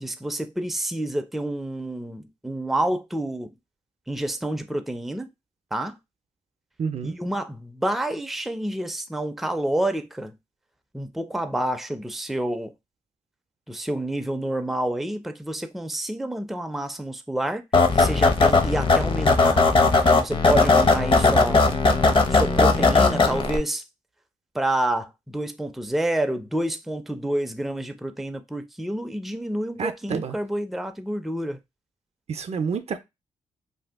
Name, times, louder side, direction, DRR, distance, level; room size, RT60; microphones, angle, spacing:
voice 1, 0.0-3.5 4.1-5.3 5.7-6.0 7.0-10.4 10.9-12.7 13.7-17.6 17.9-19.7 20.1-21.7 22.3-23.8 24.5-31.6, right 1 dB, ahead, 0.4 m, -28 dB
voice 2, 6.8-7.2 29.8-30.4 32.3-33.0, right 6 dB, 55° right, 0.5 m, -29 dB
sound 1, 17.7-23.6, left 3 dB, 40° left, 0.7 m, -18 dB
2.7 x 2.3 x 3.4 m
cardioid pair, 65°, 13 cm